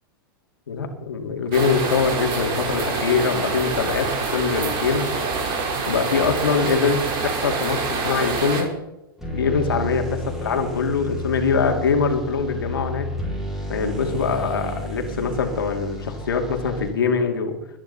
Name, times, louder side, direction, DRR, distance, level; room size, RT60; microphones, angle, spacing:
voice 1, 0.7-5.1 5.9-8.7 9.3-13.1 13.7-17.6, left 5 dB, 90° left, 4 dB, 2.5 m, -23 dB
sound 1, 1.5-8.6, right 4 dB, 45° right, 4.0 m, -26 dB
sound 2, 9.2-17.2, left 1 dB, 5° right, 5.4 m, -32 dB
22.5 x 10.0 x 4.2 m, 0.91 s
hypercardioid pair, 115°, 12 cm